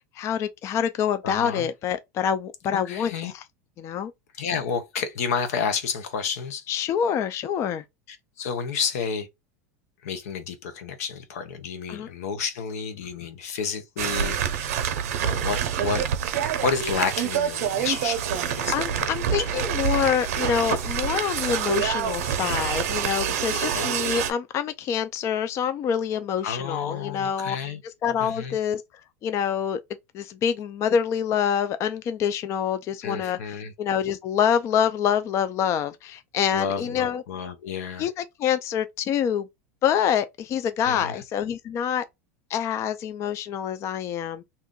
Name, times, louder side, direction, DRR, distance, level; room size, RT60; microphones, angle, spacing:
voice 1, 0.2-3.4 3.8-4.1 6.7-7.8 11.9-12.1 18.7-27.6 27.8-28.8 29.2-29.8 30.1-37.2 38.0-39.5 39.8-42.1 42.5-44.4, left 8 dB, 35° left, 0.3 m, -26 dB
voice 2, 1.2-1.7 2.7-3.3 4.4-6.7 8.1-9.3 10.0-14.8 15.2-16.1 16.6-18.8 19.4-19.5 21.7-21.9 23.7-23.9 26.4-27.8 28.2-28.6 33.0-33.7 36.5-38.1 40.9-41.2, left 6 dB, 80° left, 0.8 m, -30 dB
sound 1, 14.0-24.3, right 8 dB, 85° right, 0.6 m, -26 dB
2.7 x 2.4 x 3.6 m
supercardioid pair, 125°, 8 cm